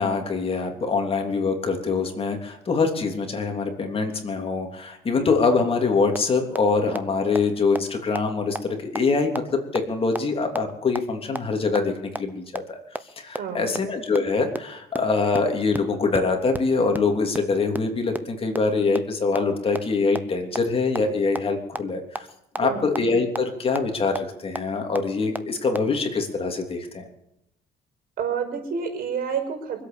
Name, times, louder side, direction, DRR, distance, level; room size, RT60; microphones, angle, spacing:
voice 1, 0.0-12.8 13.2-22.3 22.6-27.0, left 4 dB, 35° left, 3 dB, 3.2 m, -24 dB
sound 1, 6.1-6.2 6.5-6.6 6.9-7.0 7.4-7.5 7.8-7.9 8.2-8.3 8.6-8.7 9.0-9.1 9.4-9.5 9.8-9.9 10.2-10.3 10.6-10.7 11.0-11.1 11.4-11.5 11.8-11.9 12.2-12.3 12.6-12.7 12.9-13.0 13.3-13.4 13.8-13.9 14.1-14.2 14.5-14.6 14.9-15.0 15.3-15.4 15.7-15.8 16.1-16.2 16.5-16.6 16.9-17.0 17.3-17.4 17.8-17.9 18.2-18.3 18.5-18.6 19.0-19.1 19.3-19.4 19.7-19.8 20.1-20.2 20.6-20.7 21.0-21.1 21.4-21.5 21.8-21.9 22.2-22.3 22.6-22.7 23.0-23.1 23.4-23.5 23.8-23.9 24.2-24.3 24.6-24.7 25.0-25.1 25.3-25.4 25.7-25.8, right 2 dB, 10° right, 0.9 m, -28 dB
voice 2, 13.4-13.8 22.6-22.9 28.2-29.8, right 6 dB, 60° right, 4 dB, 5.3 m, -29 dB
24.5 x 8.5 x 7.0 m, 0.81 s
cardioid pair, 110°, 17 cm